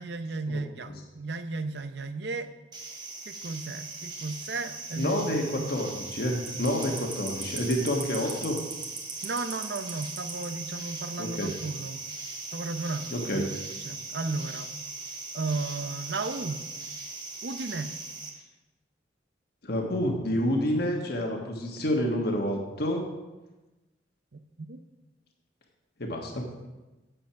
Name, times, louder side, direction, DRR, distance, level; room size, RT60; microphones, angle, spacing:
voice 1, 0.0-2.5 3.2-5.7 9.2-12.0 12.5-14.7 15.3-16.6 17.4-17.9 24.3-24.8, right 3 dB, 65° right, 10 dB, 0.7 m, -34 dB
sound 1, 2.7-18.3, right 3 dB, 25° right, 1.5 m, -39 dB
voice 2, 5.0-8.6 11.2-11.5 13.1-13.4 19.6-23.1 26.0-26.7, left 1 dB, 60° left, 1 dB, 1.4 m, -28 dB
8.9 x 7.8 x 5.7 m, 1.1 s
head